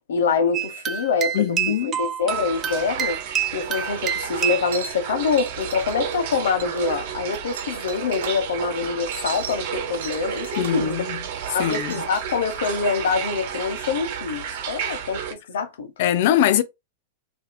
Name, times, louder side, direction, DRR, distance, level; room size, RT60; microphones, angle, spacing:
voice 1, 0.1-3.2 3.5-11.0 11.5-15.9, left 5 dB, 90° left, 1.0 m, -25 dB
sound 1, 0.5-4.8, right 9 dB, 20° right, 0.4 m, -27 dB
voice 2, 1.3-2.0 10.6-11.2 11.6-12.0 16.0-16.6, left 11 dB, 55° left, 0.5 m, -22 dB
sound 2, 2.3-15.3, right 8 dB, 50° right, 1.0 m, -32 dB
sound 3, 4.6-8.4 8.8-10.9 11.3-13.1, right 7 dB, 80° right, 1.0 m, -38 dB
2.7 x 2.7 x 4.1 m
supercardioid pair, 165°, 0 cm